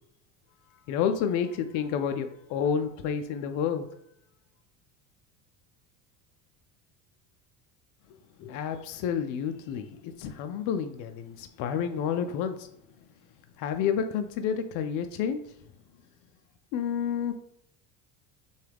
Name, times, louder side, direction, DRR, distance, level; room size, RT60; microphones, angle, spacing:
voice 1, 0.9-3.9 8.4-12.7 13.6-15.4 16.7-17.3, left 7 dB, 55° left, 7 dB, 0.5 m, -30 dB
6.2 x 2.3 x 3.4 m, 0.73 s
supercardioid pair, 125°, 37 cm